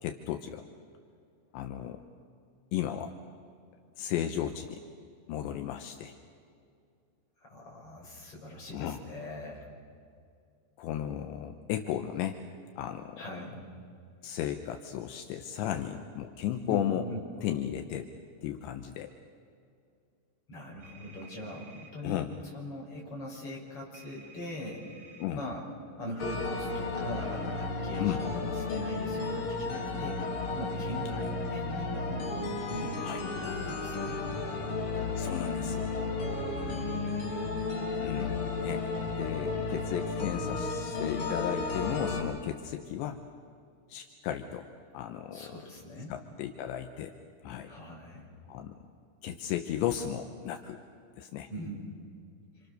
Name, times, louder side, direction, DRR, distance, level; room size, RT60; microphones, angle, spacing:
voice 1, 0.0-0.6 1.5-2.0 2.7-3.1 4.0-4.8 5.3-6.1 8.7-9.0 10.8-12.4 12.8-13.2 14.2-17.1 17.4-18.1 18.4-19.1 22.0-22.3 25.2-25.4 28.0-28.2 31.1-31.2 33.0-33.2 35.2-35.9 38.0-38.9 39.2-43.2 43.9-44.7 44.9-45.6 46.1-47.1 47.4-47.7 48.5-48.7 49.2-50.8 51.2-51.5, left 11 dB, 80° left, 6 dB, 3.1 m, -34 dB
voice 2, 7.4-9.7 13.2-13.6 16.7-17.2 20.5-22.3 22.5-25.6 26.0-32.3 32.7-34.2 36.6-37.3 45.3-46.1 47.7-48.2 51.5-51.8, left 1 dB, 30° left, -2 dB, 6.4 m, -41 dB
sound 1, 20.8-21.9 23.9-25.3, right 3 dB, 40° right, 3.1 m, -53 dB
sound 2, 26.2-42.2, left 3 dB, 45° left, 5.2 m, -33 dB
28.5 x 27.5 x 6.7 m, 2.4 s
omnidirectional pair, 5.4 m